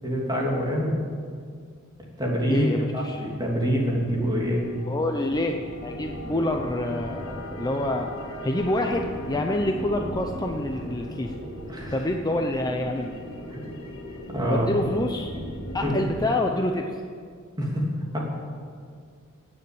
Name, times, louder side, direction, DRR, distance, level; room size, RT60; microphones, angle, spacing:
voice 1, 0.0-1.0 2.2-2.7 2.9-4.7 11.7-11.9 13.5-13.6 14.3-14.7 15.8-16.0 17.6-17.9 18.1-18.3, equal, 20° right, -2 dB, 3.0 m, -26 dB
voice 2, 2.5-3.2 4.9-8.1 8.4-11.3 11.9-13.1 14.5-15.3 15.7-16.8, left 1 dB, 20° left, 3 dB, 0.7 m, -27 dB
sound 1, 3.3-16.3, left 1 dB, 80° left, 2.7 m, -37 dB
17.5 x 6.8 x 8.8 m, 2.1 s
head